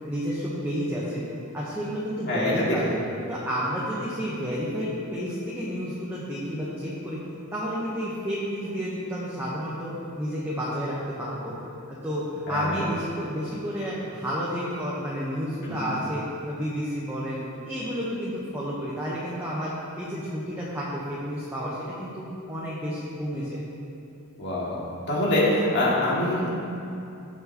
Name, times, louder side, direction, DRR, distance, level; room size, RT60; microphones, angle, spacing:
voice 1, 0.0-1.2 1.5-2.9 3.3-7.2 7.5-9.9 10.2-11.5 12.0-16.2 16.5-23.6, equal, 10° right, -8 dB, 1.2 m, -31 dB
voice 2, 2.3-2.8 12.5-12.8 15.6-16.0 24.4-24.8 25.1-26.5, left 1 dB, 50° left, -6 dB, 2.4 m, -25 dB
16.5 x 6.5 x 3.1 m, 2.7 s
head